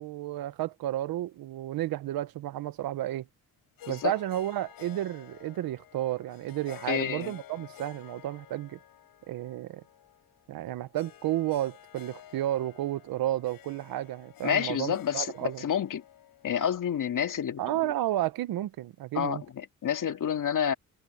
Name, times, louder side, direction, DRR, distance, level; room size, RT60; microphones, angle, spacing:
voice 1, 0.0-3.3 3.9-8.8 9.3-9.8 10.5-15.6 17.6-19.4, right 14 dB, 85° right, 1.2 m, -32 dB
Harp, 3.8-17.4, left 12 dB, 80° left, 7.8 m, -52 dB
voice 2, 6.9-7.3 14.4-16.0 16.4-17.9 19.1-20.7, left 8 dB, 65° left, 2.6 m, -29 dB
supercardioid pair, 65°, 35 cm